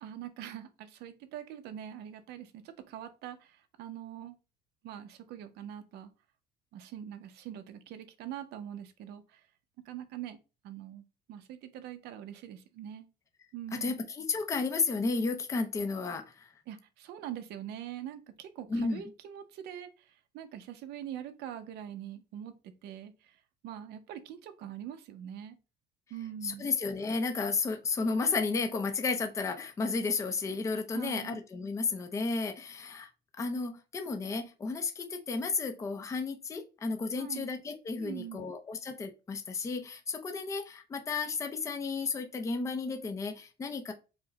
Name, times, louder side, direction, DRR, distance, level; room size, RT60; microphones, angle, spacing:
voice 1, 0.0-4.3 4.8-6.1 6.7-9.5 9.8-10.4 10.6-13.1 13.5-14.0 16.7-25.6 26.1-26.7 30.9-31.4 37.2-37.5 38.0-38.5, right 10 dB, 65° right, 0.7 m, -43 dB
voice 2, 13.8-16.5 18.7-19.0 26.4-33.1 33.4-43.9, left 4 dB, 15° left, 0.5 m, -33 dB
4.8 x 2.1 x 3.7 m
cardioid pair, 165°, 18 cm